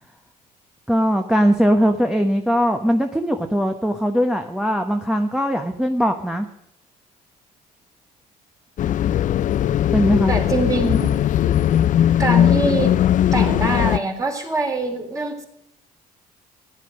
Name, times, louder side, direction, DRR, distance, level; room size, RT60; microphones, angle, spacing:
voice 1, 0.9-6.5 9.9-10.3, equal, 5° right, 3 dB, 1.1 m, -20 dB
sound 1, 8.8-14.0, left 11 dB, 50° left, 0.5 m, -19 dB
voice 2, 10.3-11.1 12.2-13.0 13.3-15.5, right 2 dB, 20° right, 3 dB, 3.5 m, -23 dB
15.0 x 10.5 x 6.3 m, 0.82 s
cardioid pair, 110°, 17 cm